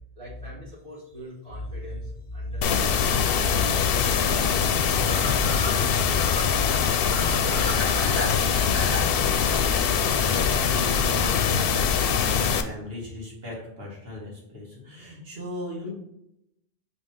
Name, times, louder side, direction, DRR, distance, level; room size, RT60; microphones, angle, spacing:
voice 1, 0.2-6.1 6.4-8.6, left 1 dB, 30° right, -11 dB, 2.5 m, -37 dB
sound 1, 0.9-1.1 1.5-1.6 4.0-4.1 4.4-4.5 4.8-9.0, right 1 dB, 15° right, 1.0 m, -34 dB
sound 2, 2.6-12.6, left 7 dB, 65° left, 0.7 m, -23 dB
voice 2, 8.7-15.9, left 1 dB, 65° right, -4 dB, 2.2 m, -38 dB
5.6 x 3.1 x 5.4 m, 0.80 s
omnidirectional pair, 1.1 m